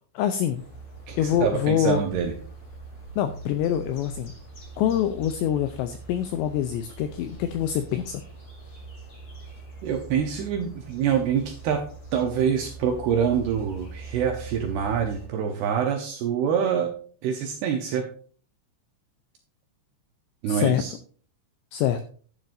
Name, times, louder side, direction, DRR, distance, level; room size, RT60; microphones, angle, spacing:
voice 1, 0.1-0.6 1.2-2.0 3.2-4.3 4.8-8.2 20.5-20.8 21.7-22.1, left 10 dB, 90° left, 8 dB, 2.5 m, -25 dB
sound 1, 0.5-15.3, right 3 dB, 30° left, 1.7 m, -42 dB
voice 2, 1.1-2.3 9.8-11.8 12.1-16.9 17.2-18.1 20.4-20.9, right 7 dB, 75° right, 4 dB, 2.4 m, -25 dB
11.0 x 10.5 x 2.6 m, 0.43 s
omnidirectional pair, 5.8 m